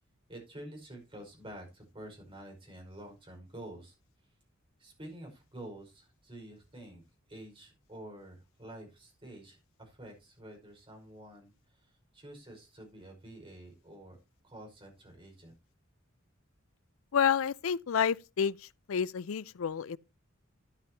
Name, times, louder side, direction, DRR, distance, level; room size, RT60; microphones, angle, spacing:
voice 1, 0.3-3.9 4.8-7.0 7.3-14.2 14.4-15.5, right 1 dB, 25° right, 5.4 m, -49 dB
voice 2, 17.1-20.0, left 7 dB, 75° left, 0.5 m, -29 dB
12.5 x 10.5 x 2.9 m
head